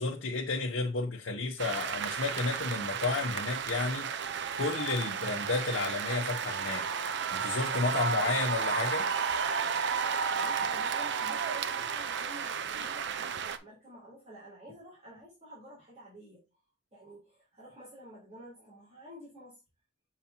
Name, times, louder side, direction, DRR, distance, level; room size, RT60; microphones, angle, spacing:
voice 1, 0.0-4.1 4.6-6.9 7.3-9.1, left 3 dB, 90° left, 0.9 m, -32 dB
sound 1, 1.6-13.6, right 6 dB, 65° right, 0.6 m, -32 dB
voice 2, 10.3-16.4 16.9-19.6, right 1 dB, 35° right, 3.5 m, -50 dB
7.3 x 4.9 x 2.7 m
head